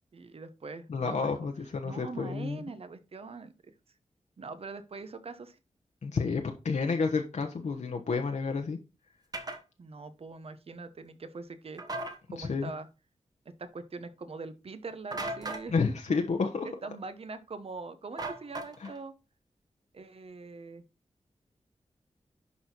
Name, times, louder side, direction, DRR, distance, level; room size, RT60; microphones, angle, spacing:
voice 1, 0.1-1.5 1.8-3.7 4.4-5.6 9.8-11.8 12.3-12.9 13.6-15.7 16.6-19.1 19.9-20.8, right 4 dB, 55° right, 11 dB, 1.1 m, -43 dB
voice 2, 0.9-2.6 6.0-8.8 12.4-12.7 15.7-16.7 18.8-18.9, left 4 dB, 75° left, 3 dB, 1.1 m, -30 dB
sound 1, 9.3-9.6 11.8-12.2 15.1-15.7 18.2-19.0, right 2 dB, 35° right, 1.2 m, -36 dB
11.0 x 4.2 x 4.5 m, 0.28 s
wide cardioid pair, 130°, 12 cm